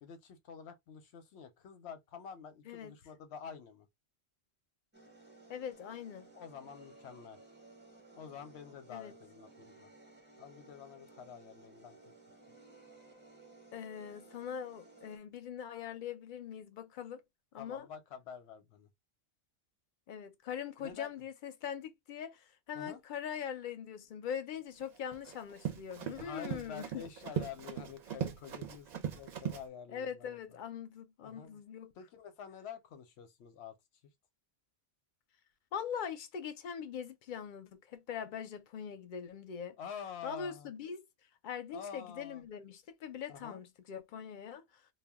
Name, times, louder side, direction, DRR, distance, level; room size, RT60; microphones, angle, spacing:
voice 1, 0.0-3.9 6.3-7.4 8.1-9.9 10.4-12.0 17.6-18.9 20.8-21.1 22.7-23.0 26.2-30.4 31.2-31.6 32.0-33.7 39.8-40.7 41.7-42.4 43.3-43.6, left 7 dB, 85° left, 0.9 m, -48 dB
sound 1, 4.9-15.2, right 3 dB, 10° right, 0.6 m, -58 dB
voice 2, 5.5-6.3 8.9-9.1 13.7-17.2 17.5-17.9 20.1-27.0 29.9-31.9 35.7-39.8 40.2-41.0 41.4-44.8, left 8 dB, 60° left, 0.6 m, -42 dB
Run, 24.8-29.6, right 9 dB, 55° right, 0.5 m, -39 dB
2.2 x 2.1 x 3.4 m
omnidirectional pair, 1.1 m